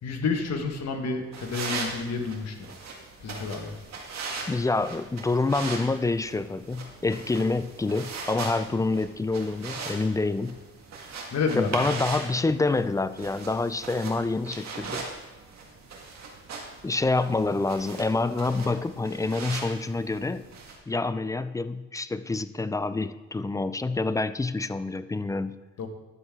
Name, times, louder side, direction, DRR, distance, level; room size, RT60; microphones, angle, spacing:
voice 1, 0.0-2.5 3.2-3.7 11.3-11.7 25.8-25.9, left 4 dB, 60° left, 4 dB, 1.5 m, -29 dB
sound 1, 1.3-20.8, right 4 dB, 60° right, 1.9 m, -39 dB
voice 2, 4.5-10.6 11.6-15.1 16.8-20.4 20.9-25.5, left 3 dB, 10° left, 13 dB, 0.4 m, -27 dB
11.0 x 7.4 x 3.7 m, 1.2 s
cardioid pair, 90°, 30 cm